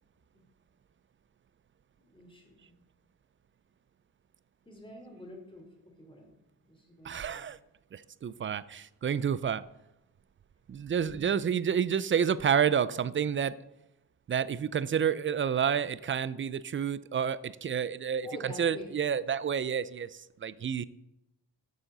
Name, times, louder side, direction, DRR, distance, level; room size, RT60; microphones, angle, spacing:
voice 1, 2.0-2.8 4.6-6.3 6.6-7.5 11.0-11.4 18.2-18.9, left 2 dB, 10° left, 2.9 m, -47 dB
voice 2, 7.0-7.6 7.9-9.6 10.7-13.5 14.3-20.8, right 8 dB, 30° right, 0.4 m, -29 dB
9.1 x 6.5 x 3.9 m
supercardioid pair, 60°, 44 cm